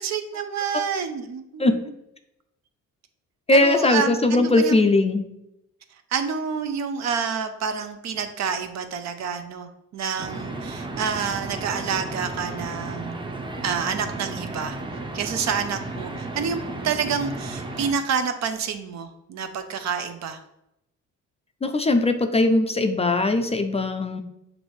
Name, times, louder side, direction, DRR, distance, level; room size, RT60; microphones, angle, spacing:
voice 1, 0.0-1.9 3.5-4.8 6.1-13.1 13.6-14.8 15.1-20.4, right 6 dB, 65° right, 8 dB, 0.6 m, -28 dB
voice 2, 3.5-5.2 21.6-24.2, left 2 dB, 20° left, 7 dB, 0.4 m, -20 dB
sound 1, 10.2-17.9, right 2 dB, 15° right, 0.6 m, -34 dB
6.0 x 2.6 x 3.1 m, 0.83 s
cardioid pair, 90°, 30 cm